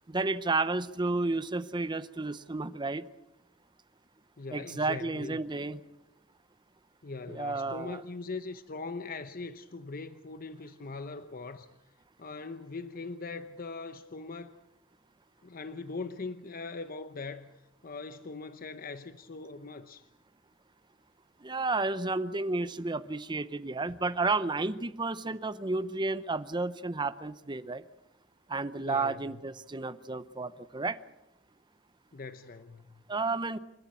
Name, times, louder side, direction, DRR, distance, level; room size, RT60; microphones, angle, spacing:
voice 1, 0.1-3.0 4.5-5.8 7.3-8.0 21.4-27.8 28.5-31.0 33.1-33.6, right 3 dB, 25° right, 0.7 m, -32 dB
voice 2, 4.4-5.4 7.0-11.7 12.2-14.6 15.4-17.5 17.8-20.1 28.8-29.3 32.1-32.9, left 3 dB, 45° left, 0.8 m, -41 dB
28.0 x 14.5 x 8.4 m
head